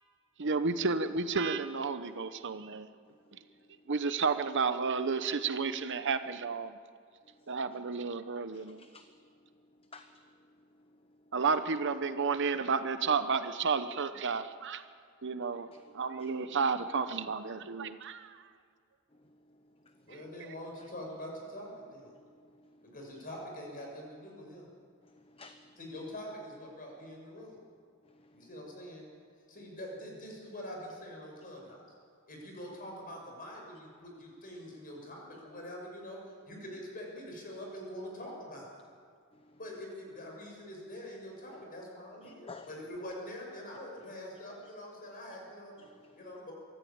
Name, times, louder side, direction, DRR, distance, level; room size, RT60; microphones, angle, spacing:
voice 1, 0.4-2.9 3.9-6.8 7.5-8.8 11.3-14.8 15.2-15.7 15.9-18.4 20.1-20.5, right 5 dB, 55° right, 11 dB, 0.9 m, -32 dB
voice 2, 8.5-9.1 9.9-10.1 15.7-15.8 16.2-16.3 22.1-22.3 25.0-25.7 28.1-28.5 42.2-42.7 45.8-46.2, left 4 dB, 25° left, 8 dB, 0.8 m, -53 dB
voice 3, 20.1-22.1 22.8-24.7 25.8-27.6 28.3-29.1 29.5-31.8 32.3-38.7 39.6-45.7 46.2-46.5, equal, 40° left, 0 dB, 6.4 m, -44 dB
24.0 x 14.5 x 8.8 m, 2.1 s
head